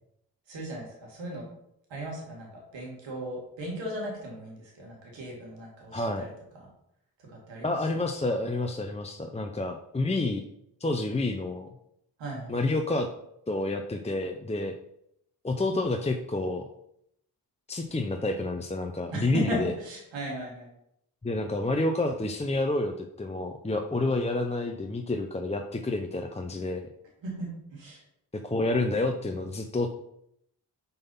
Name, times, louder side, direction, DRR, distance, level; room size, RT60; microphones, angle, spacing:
voice 1, 0.5-1.4 1.9-6.7 7.2-7.7 12.2-12.6 19.1-20.7 27.2-28.0, right 1 dB, 85° right, -2 dB, 2.8 m, -37 dB
voice 2, 5.9-6.2 7.6-10.4 10.8-11.7 12.5-13.1 13.5-14.7 15.4-16.6 17.7-19.7 21.2-26.9 28.3-29.9, left 2 dB, 15° left, 4 dB, 0.8 m, -29 dB
5.6 x 5.5 x 5.7 m, 0.75 s
supercardioid pair, 50°, 43 cm